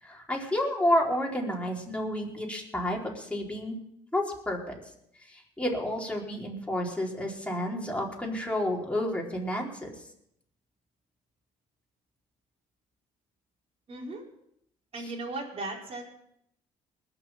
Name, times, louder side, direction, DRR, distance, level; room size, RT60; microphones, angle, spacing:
voice 1, 0.0-3.8 4.1-4.8 5.3-9.9, left 1 dB, 10° left, -2 dB, 4.5 m, -30 dB
voice 2, 13.9-14.2 14.9-16.0, right 2 dB, 45° right, -3 dB, 4.7 m, -36 dB
20.5 x 6.9 x 6.1 m, 0.73 s
supercardioid pair, 70°, 14 cm